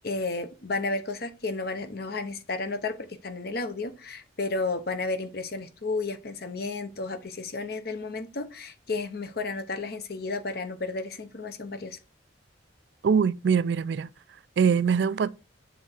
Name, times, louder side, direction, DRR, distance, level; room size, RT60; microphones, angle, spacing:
voice 1, 0.0-12.0, left 3 dB, 55° left, 0.8 m, -32 dB
voice 2, 13.0-14.1 14.6-15.3, right 6 dB, 65° right, 0.3 m, -23 dB
7.1 x 3.6 x 4.3 m
head